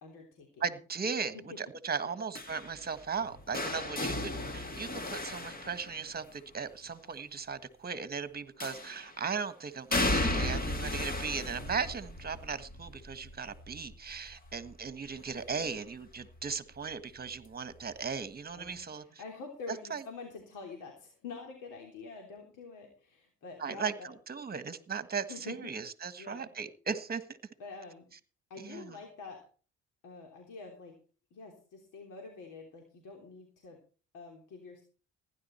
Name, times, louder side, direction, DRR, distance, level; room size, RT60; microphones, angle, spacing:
voice 1, 0.0-0.8 1.3-1.6 2.0-2.1 3.5-3.9 18.5-24.1 25.3-25.8 26.2-26.5 27.6-28.1 28.5-29.4 30.0-30.9 31.3-33.8 34.1-34.8, left 4 dB, 85° left, 1 dB, 3.4 m, -47 dB
voice 2, 0.6-19.2 19.7-20.0 23.6-27.2 28.6-29.0, right 5 dB, 30° right, 12 dB, 1.5 m, -37 dB
sound 1, 2.3-6.4 8.6-9.2 9.9-15.7 16.1-16.5 17.7-17.8, left 2 dB, 30° left, 2.3 m, -35 dB
15.5 x 11.0 x 4.4 m, 0.38 s
cardioid pair, 90°, 30 cm